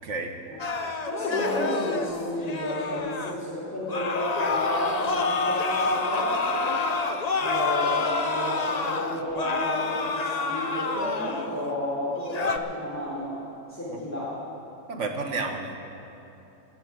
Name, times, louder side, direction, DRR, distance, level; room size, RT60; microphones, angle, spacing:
voice 1, 0.0-0.3 13.9-14.0 14.9-15.7, right 3 dB, 50° right, 3 dB, 1.6 m, -31 dB
sound 1, 0.6-3.3 3.9-11.7 12.1-12.6, left 3 dB, 55° left, 0.4 m, -28 dB
voice 2, 1.1-6.8 7.4-13.4 13.7-14.4, left 1 dB, 10° left, -10 dB, 3.6 m, -31 dB
17.5 x 7.0 x 9.5 m, 3.0 s
omnidirectional pair, 1.7 m